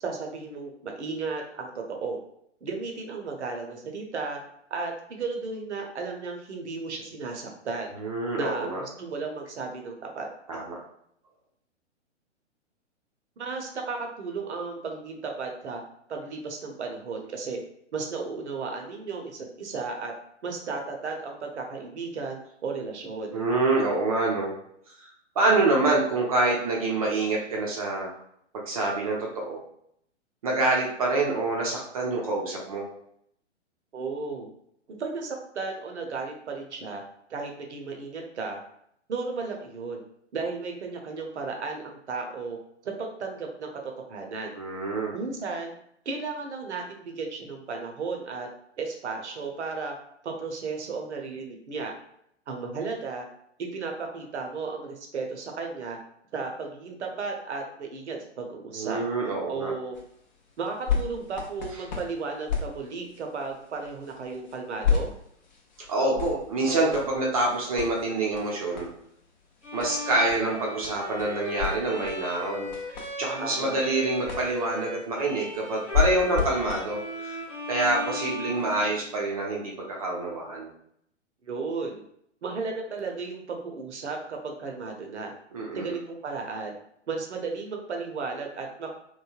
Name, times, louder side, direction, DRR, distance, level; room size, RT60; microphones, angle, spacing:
voice 1, 0.0-2.2 2.6-4.4 4.7-7.9 8.4-10.6 13.4-15.8 16.1-17.6 17.9-20.1 20.4-23.4 33.9-34.5 35.0-37.0 37.3-38.6 39.1-40.0 40.3-42.6 42.8-43.8 44.1-44.5 45.1-45.7 46.1-48.5 48.8-49.9 50.2-51.9 52.5-53.2 53.7-56.0 56.3-59.0 59.5-60.0 60.6-65.1 73.4-73.9 81.4-82.0 82.4-85.3 85.7-86.7 87.1-88.9, right 4 dB, 70° right, 2 dB, 0.7 m, -34 dB
voice 2, 8.0-8.8 10.5-10.8 23.3-24.5 25.4-28.1 28.5-29.6 30.4-32.8 44.5-45.1 58.7-59.7 65.9-68.9 69.7-72.7 73.2-77.3 77.7-80.7 85.5-85.9, right 2 dB, 30° right, -1 dB, 0.5 m, -26 dB
sound 1, 59.9-78.7 79.4-79.5, left 6 dB, 40° left, 0.5 m, -34 dB
Bowed string instrument, 69.6-79.4, left 1 dB, 90° left, 1.0 m, -37 dB
3.1 x 2.1 x 2.3 m, 0.71 s
figure-of-eight pair, 120°, 36 cm